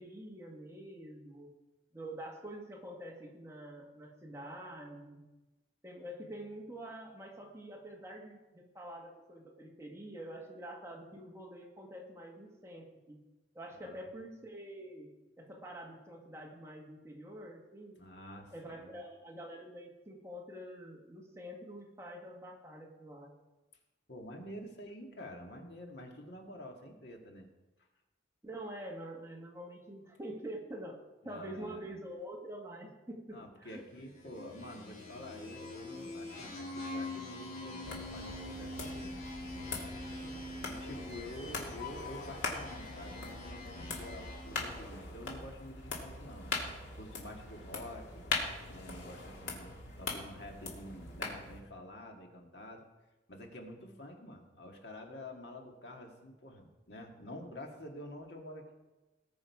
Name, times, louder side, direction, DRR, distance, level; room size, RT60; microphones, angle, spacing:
voice 1, 0.0-1.5 1.9-5.2 5.8-13.2 13.5-15.1 15.4-18.0 18.5-23.3 28.4-31.0 31.2-33.8 39.8-40.4, right 1 dB, 15° right, 0 dB, 1.6 m, -46 dB
voice 2, 13.7-14.2 18.0-18.5 18.8-18.9 24.1-27.5 31.2-31.8 33.3-39.3 40.3-46.5 47.0-48.2 48.7-52.8 53.3-58.7, left 1 dB, 65° left, 2 dB, 1.8 m, -48 dB
sound 1, 34.1-45.0, left 2 dB, 45° left, 3.4 m, -44 dB
sound 2, 37.8-51.6, left 3 dB, 80° left, 2.4 m, -42 dB
18.5 x 6.4 x 4.8 m, 1.1 s
head